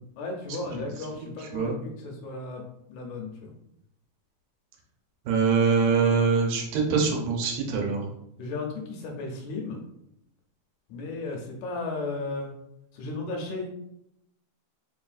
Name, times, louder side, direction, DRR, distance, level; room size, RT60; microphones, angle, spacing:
voice 1, 0.2-2.6 2.9-3.5 8.4-9.8 10.9-12.5 13.0-13.7, left 3 dB, 75° left, 1 dB, 1.9 m, -34 dB
voice 2, 0.7-1.8 5.3-8.0, right 5 dB, 85° right, 0 dB, 2.5 m, -24 dB
5.0 x 4.0 x 2.5 m, 0.79 s
omnidirectional pair, 3.6 m